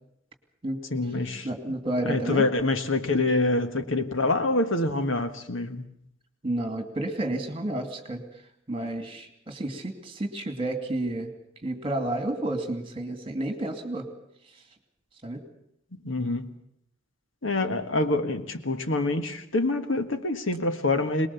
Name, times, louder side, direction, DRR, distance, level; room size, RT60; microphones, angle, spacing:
voice 1, 0.9-1.5 2.0-5.8 16.0-16.5 17.4-21.3, left 2 dB, 75° left, 1.6 m, -26 dB
voice 2, 1.4-2.5 6.4-8.2 8.7-11.3 11.6-14.1 15.2-15.4, right 1 dB, 25° right, 2.5 m, -30 dB
23.0 x 20.5 x 7.1 m
head